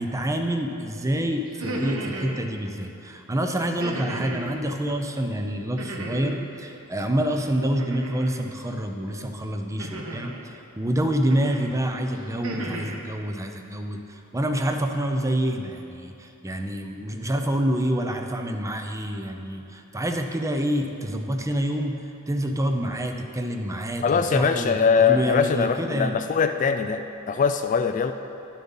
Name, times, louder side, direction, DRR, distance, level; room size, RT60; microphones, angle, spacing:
voice 1, 0.0-26.1, right 1 dB, 15° right, 5 dB, 0.6 m, -27 dB
sound 1, 1.5-2.4 3.8-4.5 5.8-6.4 7.8-8.4 9.8-10.4 11.3-11.7 12.1-13.0, right 1 dB, 70° right, 1.2 m, -34 dB
voice 2, 24.0-28.1, left 6 dB, 35° left, 8 dB, 0.3 m, -22 dB
11.0 x 7.4 x 5.5 m, 2.8 s
head